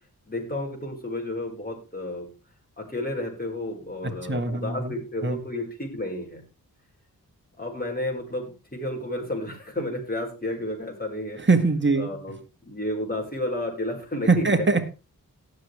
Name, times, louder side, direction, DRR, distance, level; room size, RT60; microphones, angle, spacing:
voice 1, 0.3-2.3 2.8-6.4 7.6-11.4 11.9-14.7, left 1 dB, 25° left, 0 dB, 5.0 m, -32 dB
voice 2, 4.3-4.9 5.2-5.4 11.5-12.1 14.3-14.8, right 3 dB, 30° right, 6 dB, 1.9 m, -22 dB
18.0 x 6.7 x 3.4 m, 0.31 s
cardioid pair, 40°, 37 cm